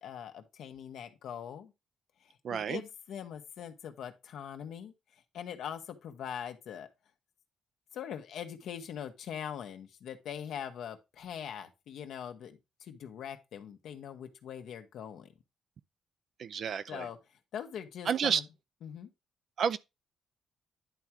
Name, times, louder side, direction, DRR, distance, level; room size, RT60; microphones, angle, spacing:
voice 1, 0.0-1.7 2.2-6.9 7.9-15.3 16.9-17.2 17.5-18.4 18.8-19.1, left 8 dB, 75° left, 1.2 m, -42 dB
voice 2, 2.4-2.8 16.4-17.1 18.1-18.4 19.6-19.8, right 7 dB, 60° right, 0.5 m, -30 dB
10.5 x 3.6 x 4.5 m
cardioid pair, 90°, 0 cm